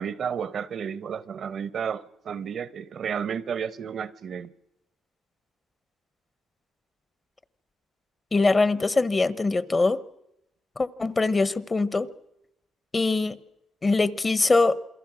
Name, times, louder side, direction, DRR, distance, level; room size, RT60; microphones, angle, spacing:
voice 1, 0.0-4.5, right 7 dB, 60° right, 0.8 m, -32 dB
voice 2, 8.3-10.0 10.8-12.1 12.9-13.4 13.8-14.8, left 3 dB, 25° left, 0.9 m, -22 dB
28.0 x 22.0 x 6.2 m
cardioid pair, 90°, 0 cm